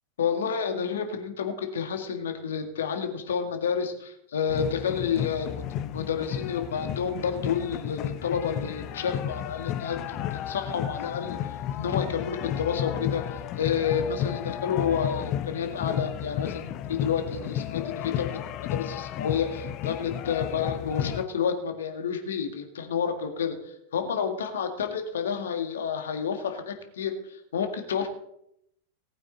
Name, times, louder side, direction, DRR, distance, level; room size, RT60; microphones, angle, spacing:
voice 1, 0.2-11.4 11.8-18.4 18.7-23.6 23.9-28.1, left 7 dB, 65° left, 6 dB, 1.9 m, -30 dB
sound 1, 4.5-21.2, left 11 dB, 35° left, 0.6 m, -33 dB
18.5 x 8.8 x 4.2 m, 0.76 s
figure-of-eight pair, 90°, 0 cm